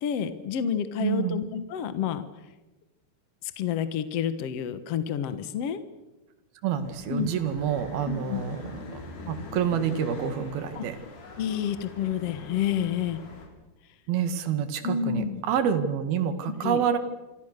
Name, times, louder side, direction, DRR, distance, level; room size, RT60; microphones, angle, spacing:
voice 1, 0.0-2.3 3.4-5.8 7.1-7.3 8.1-8.4 10.7-10.8 11.4-13.2 14.8-15.4 16.6-16.8, left 8 dB, 60° left, 11 dB, 1.7 m, -29 dB
voice 2, 1.0-1.4 6.6-9.0 9.3-11.0 14.1-17.0, right 8 dB, 70° right, 10 dB, 3.8 m, -28 dB
sound 1, 6.8-13.5, left 3 dB, 85° left, 6.3 m, -42 dB
28.5 x 25.0 x 6.7 m, 1.1 s
omnidirectional pair, 4.5 m